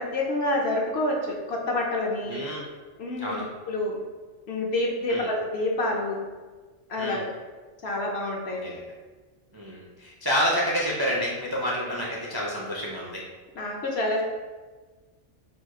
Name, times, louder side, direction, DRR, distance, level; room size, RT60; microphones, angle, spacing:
voice 1, 0.0-2.4 3.0-4.0 4.5-6.2 6.9-7.3 7.8-8.7 13.6-14.2, left 1 dB, 60° left, -1 dB, 0.9 m, -28 dB
voice 2, 2.3-2.7 3.2-3.5 5.1-5.3 7.0-7.3 8.5-8.9 9.5-13.3, equal, 30° right, -4 dB, 0.4 m, -29 dB
4.3 x 2.4 x 4.6 m, 1.3 s
omnidirectional pair, 1.3 m